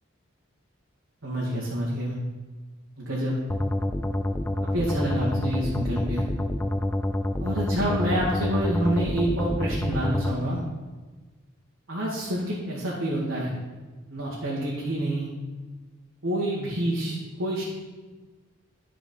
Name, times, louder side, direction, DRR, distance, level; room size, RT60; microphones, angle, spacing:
voice 1, 1.2-2.1 3.0-3.4 4.7-6.2 7.4-10.6 11.9-13.5 14.1-15.3 16.2-17.6, right 1 dB, 85° right, -7 dB, 2.0 m, -27 dB
sound 1, 3.5-10.3, left 1 dB, 10° left, 0.3 m, -27 dB
11.0 x 4.9 x 5.5 m, 1.3 s
head